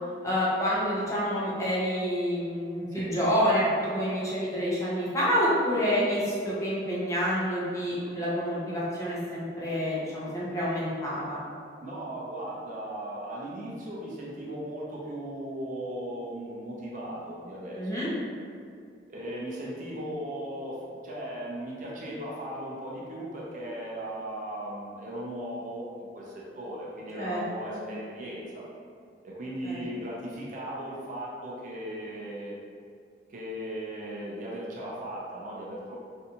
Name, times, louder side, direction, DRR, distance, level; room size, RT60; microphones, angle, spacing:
voice 1, 0.2-11.4 17.8-18.1 27.2-27.4 27.7-27.8 29.6-29.8, equal, 20° left, -8 dB, 0.6 m, -28 dB
voice 2, 11.8-18.1 19.1-28.7 29.2-32.6 33.3-36.0, right 1 dB, 45° right, -5 dB, 0.5 m, -37 dB
2.6 x 2.3 x 2.7 m, 2.2 s
head